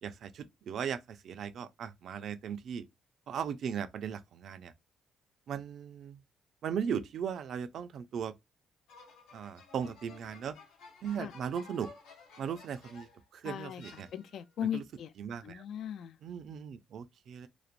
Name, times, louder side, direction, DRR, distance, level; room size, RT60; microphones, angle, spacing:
voice 1, 0.0-2.9 3.3-4.7 5.5-6.2 6.6-8.3 9.3-10.6 11.0-11.9 12.4-13.1 13.3-14.1 14.7-14.8 15.2-15.6 16.2-17.5, right 7 dB, 65° right, 0.4 m, -37 dB
sound 1, 8.9-13.3 13.8-14.6, left 3 dB, 90° left, 0.7 m, -54 dB
voice 2, 13.4-13.8 14.1-15.1 15.4-16.1, left 10 dB, 70° left, 0.3 m, -37 dB
3.1 x 2.0 x 2.4 m
cardioid pair, 90°, 0 cm